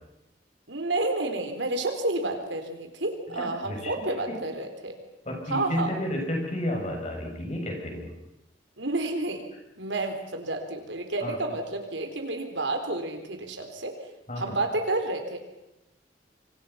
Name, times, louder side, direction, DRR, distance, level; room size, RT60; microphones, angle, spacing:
voice 1, 0.7-5.0 5.5-5.9 8.8-9.4 9.8-13.9 14.4-15.4, right 2 dB, 75° right, 6 dB, 4.0 m, -30 dB
voice 2, 3.3-3.9 4.3-4.4 5.3-8.1 11.2-11.4 14.3-14.5, left 1 dB, 35° left, 1 dB, 7.4 m, -31 dB
26.0 x 26.0 x 5.8 m, 0.91 s
head